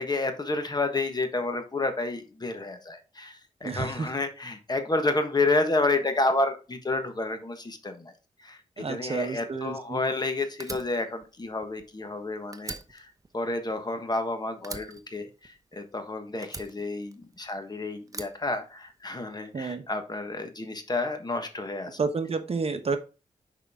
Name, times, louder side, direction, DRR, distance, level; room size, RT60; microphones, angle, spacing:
voice 1, 0.0-8.1 8.4-13.1 13.3-22.0, left 2 dB, 30° left, 7 dB, 1.4 m, -30 dB
voice 2, 3.6-4.1 8.8-10.0 19.5-19.8 22.0-23.0, right 4 dB, 45° right, 8 dB, 1.1 m, -30 dB
Fire, 10.6-12.2 12.5-14.3 14.6-16.0 16.4-17.6 18.1-19.3, right 3 dB, 25° right, 0.9 m, -42 dB
6.6 x 5.3 x 3.7 m, 0.31 s
cardioid pair, 90°, 14 cm